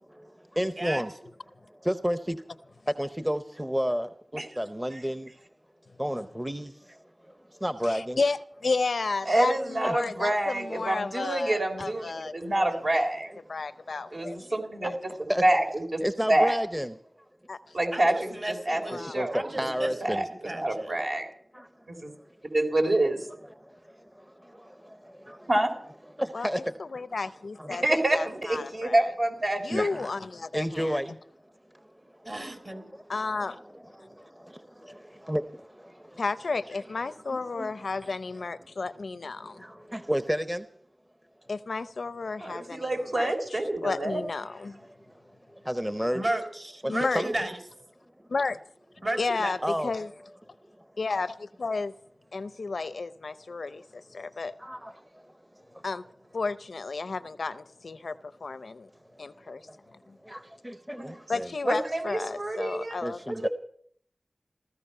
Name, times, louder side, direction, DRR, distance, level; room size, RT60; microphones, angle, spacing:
voice 1, 0.1-1.1 1.7-2.4 2.9-5.3 6.0-8.2 9.8-10.0 12.3-12.5 13.9-14.5 14.8-15.4 16.0-16.9 18.9-20.2 21.5-21.7 23.6-25.5 26.2-27.1 27.6-27.7 29.7-30.1 30.5-31.1 31.7-32.3 32.7-33.5 33.7-36.2 37.3-37.7 39.4-40.7 44.8-46.2 46.8-47.3 49.6-49.9 53.7-53.8 54.2-55.8 59.1-59.9 60.2-61.5 62.7-63.5, equal, 10° right, 0.7 m, -33 dB
voice 2, 7.8-13.0 13.5-14.4 14.8-14.9 17.5-17.8 18.9-19.1 26.3-26.5 26.8-29.1 29.6-31.0 33.1-33.6 36.2-39.6 41.5-43.3 43.8-44.8 46.9-47.2 48.3-48.6 49.2-50.1 51.0-51.9 52.3-54.5 55.8-56.0 56.3-58.9 59.2-59.6 59.9-60.2 61.3-63.2, left 4 dB, 90° left, 0.5 m, -32 dB
voice 3, 9.2-13.3 14.1-14.9 15.4-15.6 15.9-16.0 16.3-16.5 17.7-19.5 20.0-20.3 20.5-21.3 21.9-22.1 22.5-23.3 25.5-25.7 27.7-29.9 42.4-44.2 61.0-61.2 61.6-63.0 63.3-63.5, right 1 dB, 70° right, 3.5 m, -27 dB
voice 4, 17.9-19.0 19.3-20.2 20.5-20.9 32.3-32.9 46.1-47.6 49.0-49.6, right 1 dB, 45° right, 3.8 m, -33 dB
16.0 x 14.0 x 5.5 m
wide cardioid pair, 45°, 0 cm